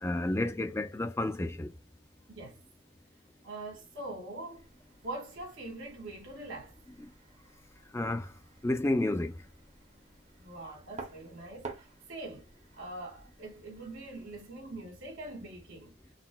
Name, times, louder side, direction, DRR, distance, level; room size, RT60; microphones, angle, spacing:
voice 1, 0.0-1.7 7.9-8.3 8.6-9.3, left 2 dB, 15° left, 0.4 m, -30 dB
voice 2, 2.3-2.6 3.4-4.7 5.0-6.8 10.4-12.5 12.7-16.0, right 2 dB, 75° right, 1.7 m, -43 dB
sound 1, 4.5-14.5, right 3 dB, 35° right, 0.7 m, -52 dB
4.0 x 2.1 x 2.2 m
head